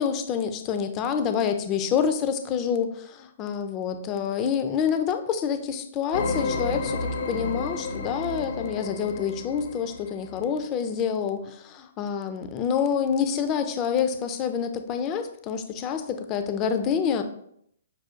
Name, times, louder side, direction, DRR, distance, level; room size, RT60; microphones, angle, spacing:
voice 1, 0.0-17.2, left 7 dB, 25° left, 9 dB, 0.3 m, -27 dB
sound 1, 6.1-10.4, left 3 dB, 70° left, 0.6 m, -31 dB
6.0 x 2.2 x 2.4 m, 0.69 s
hypercardioid pair, 155°, 0 cm